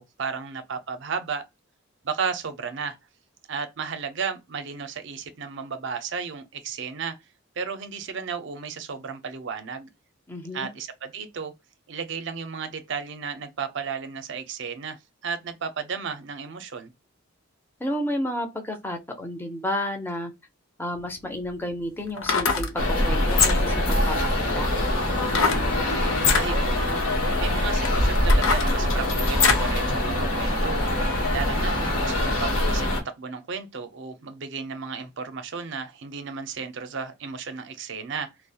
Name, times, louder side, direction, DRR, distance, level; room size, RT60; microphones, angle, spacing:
voice 1, 0.0-1.5 2.0-3.0 3.5-7.2 7.6-9.9 10.5-11.5 11.9-16.9 26.4-30.8 31.3-38.3, right 5 dB, 55° right, 0.5 m, -33 dB
voice 2, 10.3-10.7 17.8-20.3 20.8-24.7, left 1 dB, 10° left, 0.5 m, -31 dB
sound 1, 20.9-21.0 22.1-22.7 23.3-23.8 25.3-25.7 26.1-26.5 27.2-27.3 27.8-29.7 30.2-30.3, left 5 dB, 70° left, 0.5 m, -23 dB
sound 2, 22.8-33.0, left 1 dB, 85° left, 0.9 m, -24 dB
2.3 x 2.1 x 2.6 m
head